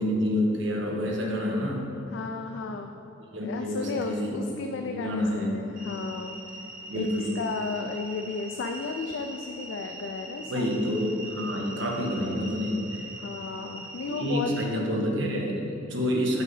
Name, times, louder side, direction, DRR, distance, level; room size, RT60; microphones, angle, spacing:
voice 1, 0.0-1.9 3.3-4.4 4.9-5.6 6.9-7.4 10.5-13.1 14.1-16.4, equal, 65° right, -1 dB, 1.1 m, -28 dB
voice 2, 2.1-2.9 3.4-6.4 7.0-7.1 7.4-10.7 11.2-11.3 13.2-14.5, left 4 dB, 65° left, 4 dB, 0.3 m, -34 dB
sound 1, 5.8-14.6, right 2 dB, 45° right, 0.9 m, -42 dB
6.8 x 5.5 x 4.0 m, 2.9 s
head